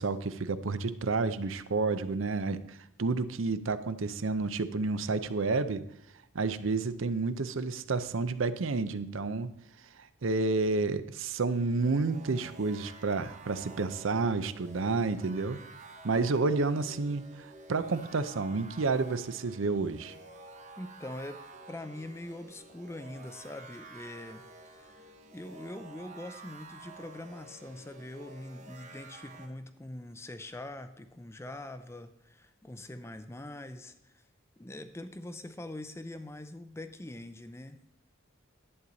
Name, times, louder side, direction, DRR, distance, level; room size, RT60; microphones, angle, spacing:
voice 1, 0.0-5.8 6.3-9.5 10.2-15.6 16.0-20.1, right 3 dB, 70° right, 13 dB, 0.6 m, -30 dB
sound 1, 11.5-29.5, right 2 dB, 35° right, 0.9 m, -51 dB
voice 2, 20.8-24.5 24.8-34.2 34.6-37.8, left 1 dB, 10° left, 10 dB, 0.4 m, -43 dB
11.0 x 8.6 x 4.0 m, 0.78 s
head